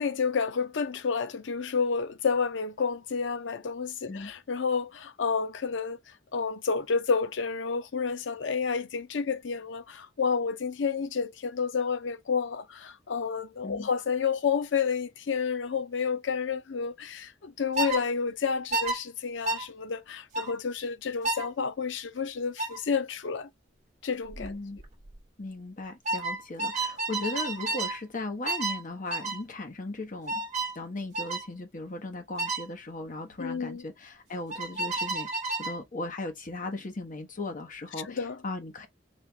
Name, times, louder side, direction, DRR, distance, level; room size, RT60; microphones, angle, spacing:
voice 1, 0.0-6.0 6.3-23.5 24.0-24.5 33.4-33.8 38.1-38.4, left 5 dB, 85° left, 0.6 m, -30 dB
sound 1, 17.8-18.0 18.7-19.0 19.5-19.6 20.3-20.5 21.2-21.5 22.6-22.8 24.3-24.5 24.8-25.1 26.1-28.0 28.5-28.8 29.1-29.4 30.3-30.7 31.1-31.5 32.4-32.6 34.5-35.8, right 2 dB, 40° right, 1.3 m, -31 dB
voice 2, 24.4-24.8 25.4-30.4 30.7-35.3 35.6-38.9, left 2 dB, 45° left, 1.2 m, -37 dB
4.4 x 2.5 x 3.3 m
head